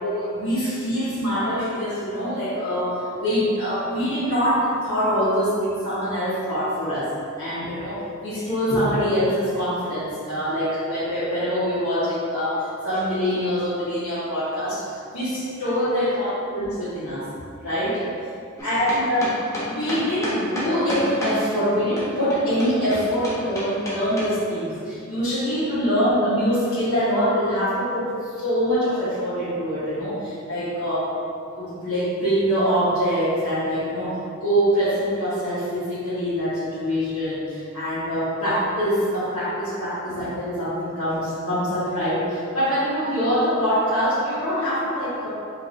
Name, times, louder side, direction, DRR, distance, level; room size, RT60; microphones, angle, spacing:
voice 1, 0.0-7.1 7.4-14.8 15.1-17.3 17.6-18.0 18.6-31.1 31.5-45.3, equal, 90° left, -14 dB, 1.4 m, -24 dB
sound 1, 18.6-21.4 22.0-24.3, equal, 15° left, 0.9 m, -30 dB
4.8 x 3.8 x 2.6 m, 2.4 s
head